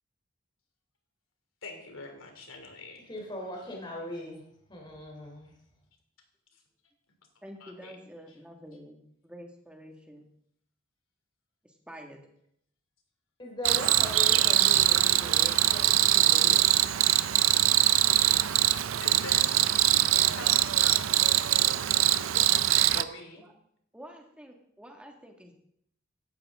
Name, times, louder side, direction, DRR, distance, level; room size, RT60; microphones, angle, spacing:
voice 1, 1.6-3.1 7.6-7.9 19.0-19.5 19.9-21.3 21.9-22.0 22.3-22.6 22.9-23.4, left 2 dB, 90° left, 5 dB, 3.0 m, -43 dB
voice 2, 3.0-4.4 4.7-5.6 13.4-16.6, left 1 dB, 25° left, -1 dB, 3.4 m, -40 dB
voice 3, 7.4-10.3 11.6-12.3 23.0-23.1 23.4-23.5 23.9-25.5, equal, 5° right, 1 dB, 1.9 m, -48 dB
Cricket, 13.7-23.0, right 14 dB, 90° right, 0.5 m, -23 dB
16.0 x 12.0 x 3.7 m, 0.71 s
head